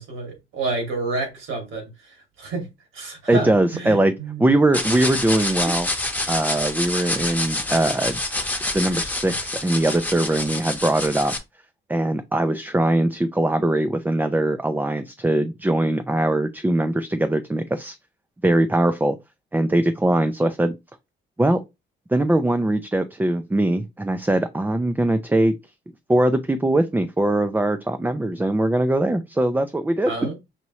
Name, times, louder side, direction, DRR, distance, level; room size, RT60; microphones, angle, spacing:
voice 1, 0.0-1.9 2.4-2.7 2.9-4.4 30.1-30.4, right 3 dB, 85° right, 2.5 m, -29 dB
voice 2, 3.3-4.1 4.4-5.9 6.3-8.2 8.7-11.3 11.9-18.0 18.4-19.2 19.5-20.7 21.4-21.6 22.1-25.5 26.1-30.1, right 1 dB, 10° right, 0.4 m, -21 dB
sound 1, 4.7-11.4, left 2 dB, 10° left, 0.9 m, -27 dB
5.6 x 2.6 x 3.0 m
cardioid pair, 90°, 20 cm